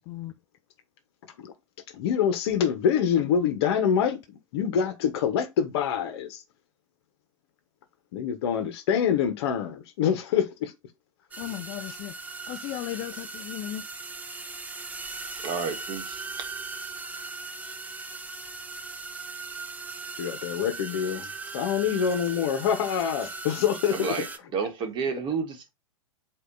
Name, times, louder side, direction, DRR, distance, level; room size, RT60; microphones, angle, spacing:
voice 1, 1.9-6.4 8.1-10.7 11.5-11.6 20.2-24.2, left 8 dB, 50° left, 1.4 m, -26 dB
sound 1, 11.3-24.4, right 3 dB, 10° right, 0.6 m, -39 dB
voice 2, 11.4-12.1 12.5-13.8, left 13 dB, 35° left, 0.6 m, -35 dB
voice 3, 15.4-16.2 23.9-24.2 24.5-25.7, right 5 dB, 30° right, 1.6 m, -30 dB
8.1 x 3.0 x 4.1 m
figure-of-eight pair, 100°, 17 cm